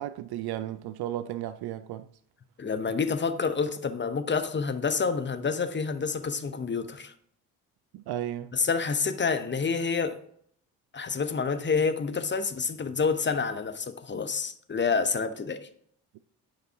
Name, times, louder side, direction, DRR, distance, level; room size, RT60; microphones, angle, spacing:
voice 1, 0.0-2.1 7.9-8.5, right 12 dB, 60° right, 0.5 m, -34 dB
voice 2, 2.6-7.1 8.5-10.2 10.9-15.7, left 5 dB, 25° left, 0.8 m, -28 dB
7.2 x 5.2 x 3.5 m
hypercardioid pair, 45°, 45 cm